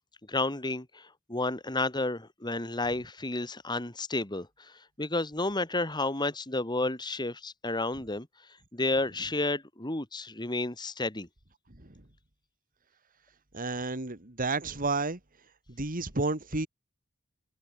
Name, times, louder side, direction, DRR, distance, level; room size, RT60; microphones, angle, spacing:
voice 1, 0.3-4.7 5.0-8.3 8.7-11.3, left 2 dB, 20° left, 2.2 m, -31 dB
voice 2, 13.5-15.2 15.8-16.7, right 3 dB, 40° right, 2.5 m, -31 dB
head